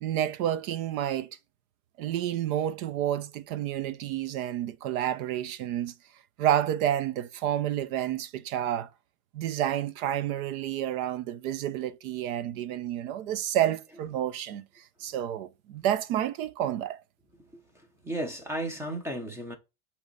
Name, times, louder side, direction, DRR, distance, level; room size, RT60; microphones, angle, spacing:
voice 1, 0.0-1.3 2.0-5.9 6.4-8.9 9.3-14.6 15.0-17.0, right 11 dB, 65° right, 0.9 m, -29 dB
voice 2, 18.0-19.6, right 1 dB, 5° right, 0.8 m, -34 dB
8.3 x 3.2 x 4.0 m
supercardioid pair, 155°, 45 cm